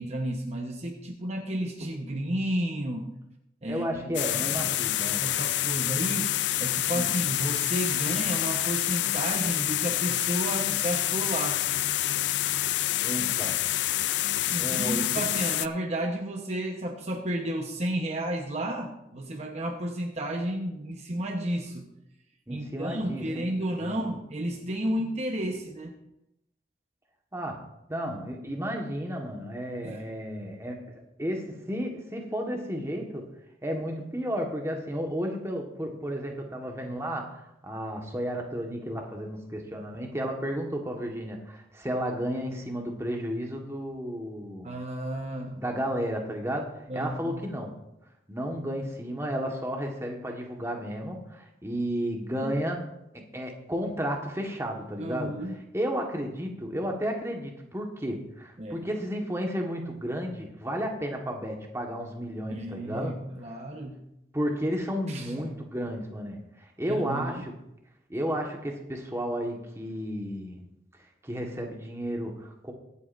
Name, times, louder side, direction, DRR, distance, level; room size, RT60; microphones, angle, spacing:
voice 1, 0.0-3.1 3.6-4.1 4.6-4.8 5.2-11.6 14.5-21.8 22.5-25.9 29.8-30.1 44.6-45.6 46.9-47.4 52.4-52.5 55.0-55.6 58.6-58.9 62.5-64.0 65.1-65.5 66.9-67.3, right 1 dB, 40° right, 2 dB, 1.0 m, -32 dB
voice 2, 3.7-5.3 6.9-7.1 13.0-13.6 14.6-15.1 22.5-23.4 23.8-24.0 27.3-30.8 31.2-33.3 33.6-44.7 45.6-47.8 48.3-52.8 53.1-55.3 55.7-63.2 63.5-63.6 64.3-67.5 68.1-70.6 71.2-72.7, equal, 15° right, 1 dB, 1.5 m, -33 dB
sound 1, 4.1-15.7, left 14 dB, 75° left, 0.4 m, -27 dB
23.0 x 8.5 x 2.6 m, 0.85 s
head